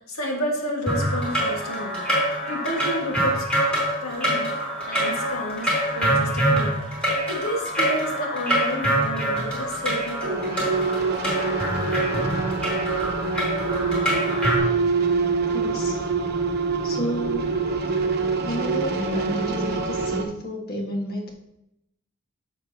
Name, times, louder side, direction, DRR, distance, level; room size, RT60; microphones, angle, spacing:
voice 1, 0.0-2.0 2.5-3.5 4.0-4.5 4.9-6.8 7.3-10.8, equal, 90° left, 0 dB, 1.8 m, -31 dB
sound 1, 0.9-14.6, right 1 dB, 5° left, 3.1 m, -25 dB
sound 2, 10.2-20.2, right 4 dB, 50° right, 0.8 m, -25 dB
voice 2, 15.5-16.1 16.8-17.5 18.4-21.3, equal, 45° left, 0 dB, 1.6 m, -31 dB
11.0 x 6.8 x 2.8 m, 0.82 s
head